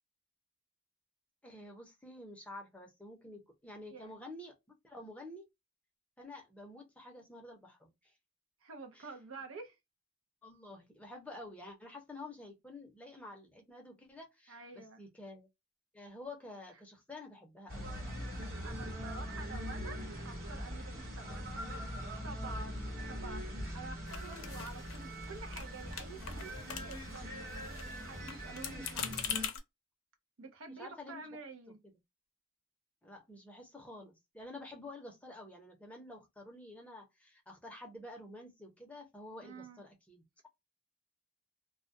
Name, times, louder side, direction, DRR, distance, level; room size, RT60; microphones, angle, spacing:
voice 1, 1.4-5.5 6.2-8.1 9.0-9.1 10.4-15.5 15.9-18.2 28.7-29.0 30.8-31.3 33.0-40.5, left 2 dB, 5° left, 0.7 m, -50 dB
voice 2, 8.6-9.8 14.5-15.0 18.6-29.6 30.4-31.8 36.0-36.1 39.4-39.8, right 3 dB, 85° right, 0.6 m, -49 dB
sound 1, 17.7-29.5, equal, 50° right, 1.1 m, -42 dB
sound 2, 24.1-25.3 25.5-25.7 25.9-27.2 27.5-29.6, left 8 dB, 90° left, 0.5 m, -42 dB
2.3 x 2.1 x 2.6 m
head